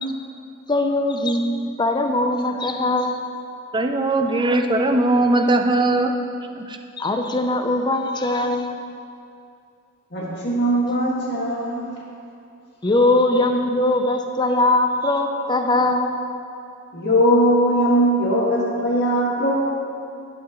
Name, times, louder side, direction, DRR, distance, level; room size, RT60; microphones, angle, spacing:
voice 1, 0.7-3.2 7.0-8.8 12.8-16.2, left 2 dB, 20° left, 4 dB, 0.6 m, -21 dB
voice 2, 3.7-6.1 6.6-6.8, right 2 dB, 20° right, 5 dB, 0.5 m, -19 dB
voice 3, 10.1-11.9 16.9-19.7, equal, 50° left, -5 dB, 2.2 m, -20 dB
16.5 x 6.0 x 3.1 m, 2.5 s
head